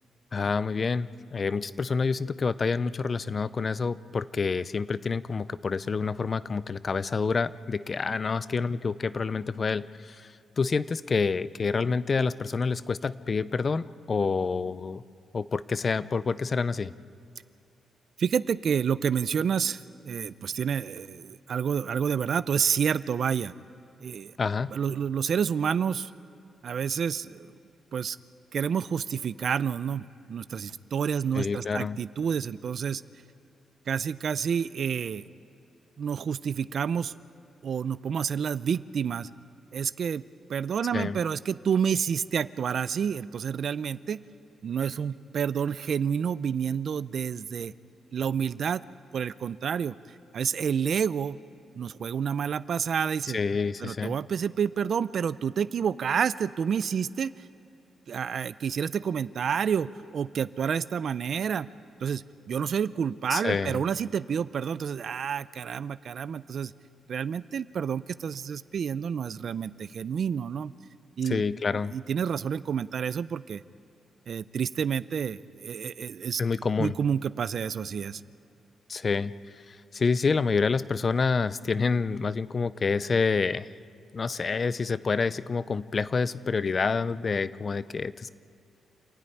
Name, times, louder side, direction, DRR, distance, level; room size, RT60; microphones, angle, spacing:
voice 1, 0.3-10.3 10.6-15.0 15.3-16.9 24.4-24.7 31.3-32.0 40.9-41.2 53.3-54.1 63.3-63.8 71.3-71.9 76.4-77.0 78.9-79.3 79.7-83.7 84.1-88.3, left 4 dB, 35° left, 16 dB, 0.5 m, -28 dB
voice 2, 18.2-23.5 24.0-24.3 24.7-26.1 26.6-27.5 27.9-28.2 28.5-33.0 33.9-35.2 36.0-37.1 37.6-39.3 39.7-40.2 40.5-44.2 44.6-47.7 48.1-48.8 49.1-49.9 50.3-51.4 51.7-53.4 53.8-57.3 58.1-61.7 62.0-66.7 67.1-70.7 71.2-71.4 71.9-73.6 74.3-76.4 76.8-78.2, right 7 dB, 55° right, 16 dB, 0.5 m, -29 dB
27.5 x 13.5 x 9.9 m, 2.6 s
cardioid pair, 125°, 0 cm